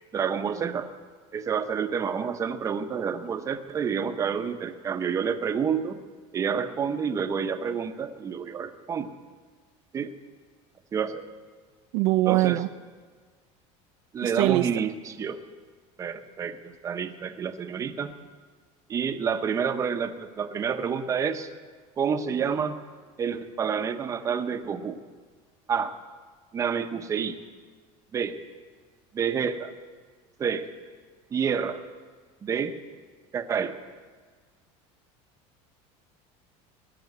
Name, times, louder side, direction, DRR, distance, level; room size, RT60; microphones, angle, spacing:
voice 1, 0.1-0.9 1.3-6.0 6.3-9.1 9.9-10.1 10.9-11.2 12.3-12.6 14.1-15.4 16.0-18.1 18.9-21.5 22.0-22.8 23.2-25.0 25.7-25.9 26.5-27.4 28.1-28.4 29.1-29.7 30.4-30.7 31.3-31.8 32.4-32.7 33.3-33.8, right 7 dB, 20° right, 9 dB, 0.7 m, -28 dB
voice 2, 11.9-12.7 14.2-14.8, right 17 dB, 70° right, 11 dB, 0.5 m, -23 dB
18.5 x 6.9 x 9.4 m, 1.5 s
cardioid pair, 165°, 15 cm